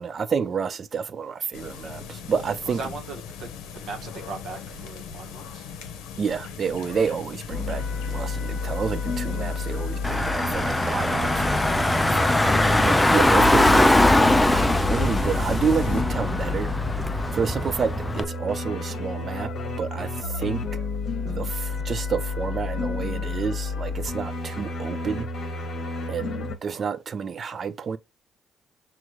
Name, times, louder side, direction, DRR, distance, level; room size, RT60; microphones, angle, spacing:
voice 1, 0.0-2.8 6.2-20.6 21.2-25.3 26.1-28.0, right 6 dB, 45° right, 0.5 m, -30 dB
sound 1, 1.5-16.0, left 6 dB, 90° left, 0.7 m, -40 dB
voice 2, 2.7-5.7, right 4 dB, 70° right, 1.1 m, -38 dB
sound 2, 7.5-26.6, left 3 dB, 60° left, 0.9 m, -30 dB
Car / Engine, 10.0-18.2, left 1 dB, 10° left, 0.4 m, -21 dB
6.2 x 2.5 x 3.0 m
cardioid pair, 85°, 0 cm